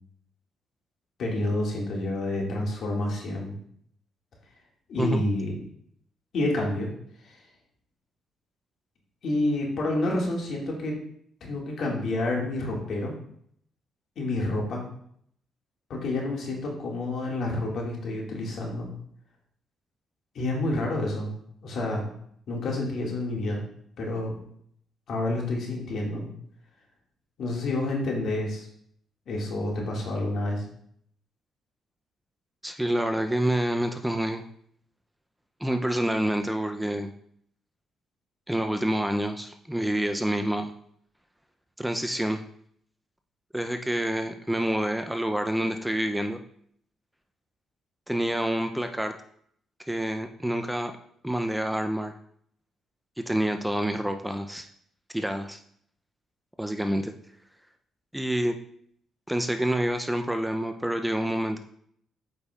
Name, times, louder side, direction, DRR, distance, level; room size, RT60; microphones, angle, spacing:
voice 1, 1.2-3.5 4.9-5.6 6.3-6.9 7.2-7.4 9.2-10.9 11.4-13.1 14.2-14.8 15.9-18.9 20.4-21.3 21.6-22.1 22.5-23.6 24.0-24.4 25.1-26.3 27.4-28.7 29.3-30.6, left 2 dB, 65° left, -1 dB, 1.9 m, -29 dB
voice 2, 32.6-34.4 35.6-37.1 38.5-40.7 41.8-42.4 43.5-46.4 48.1-49.1 49.9-50.9 51.2-52.1 53.2-54.7 55.1-55.6 56.6-57.1 58.1-58.6 59.3-61.6, right 1 dB, 5° right, 6 dB, 0.4 m, -27 dB
8.2 x 5.2 x 2.3 m, 0.66 s
cardioid pair, 90°, 0 cm